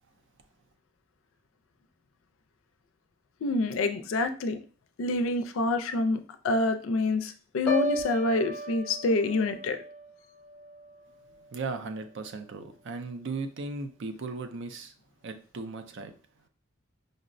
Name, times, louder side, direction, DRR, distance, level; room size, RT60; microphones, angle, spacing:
voice 1, 3.4-4.6 5.0-6.2 6.4-9.8, left 2 dB, 70° left, 0.4 m, -27 dB
Piano, 7.7-11.6 12.0-12.4, equal, 5° left, 0.7 m, -36 dB
voice 2, 11.5-14.9 15.2-16.1, right 3 dB, 65° right, 0.4 m, -37 dB
5.1 x 2.0 x 2.5 m
head